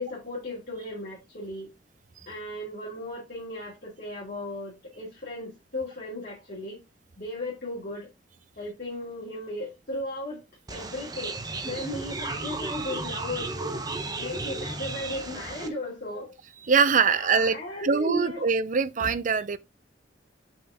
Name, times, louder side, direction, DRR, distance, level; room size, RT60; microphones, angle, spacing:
voice 1, 0.0-1.7 2.3-6.8 7.2-8.1 8.6-10.4 10.7-13.8 14.2-16.3 17.1-18.4, left 1 dB, 55° left, 2.4 m, -36 dB
sound 1, 10.7-15.7, right 3 dB, 20° right, 0.9 m, -34 dB
voice 2, 16.7-19.6, right 5 dB, 45° right, 0.5 m, -23 dB
6.0 x 5.1 x 3.6 m
head